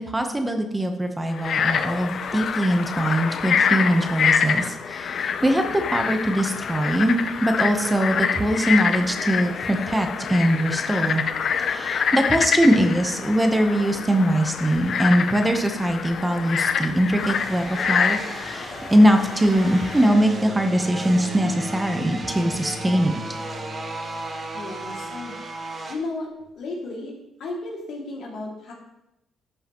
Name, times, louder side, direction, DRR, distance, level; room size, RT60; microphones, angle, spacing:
voice 1, 0.0-11.2 11.6-23.1, equal, 10° right, 5 dB, 0.9 m, -22 dB
Frog, 1.3-20.1, left 7 dB, 60° left, 0.5 m, -26 dB
sound 1, 17.2-26.0, right 2 dB, 40° right, 1.3 m, -35 dB
Bowed string instrument, 19.8-25.3 26.4-26.5, left 2 dB, 45° left, 3.1 m, -39 dB
voice 2, 24.5-25.4 25.9-26.3 26.6-27.1 27.4-28.7, left 2 dB, 75° left, -2 dB, 2.3 m, -33 dB
12.0 x 5.6 x 3.0 m, 0.92 s
cardioid pair, 90°, 0 cm